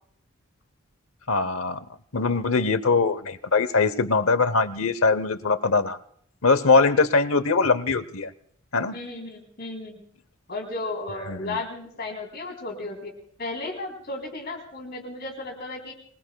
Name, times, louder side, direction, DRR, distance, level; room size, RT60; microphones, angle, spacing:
voice 1, 1.3-1.8 2.1-6.0 6.4-8.3 8.7-9.0 11.3-11.6, left 4 dB, 70° left, 14 dB, 0.9 m, -22 dB
voice 2, 8.9-10.0 10.5-13.1 13.4-15.9, left 2 dB, 45° left, 1 dB, 3.7 m, -34 dB
26.0 x 21.5 x 2.3 m, 0.64 s
head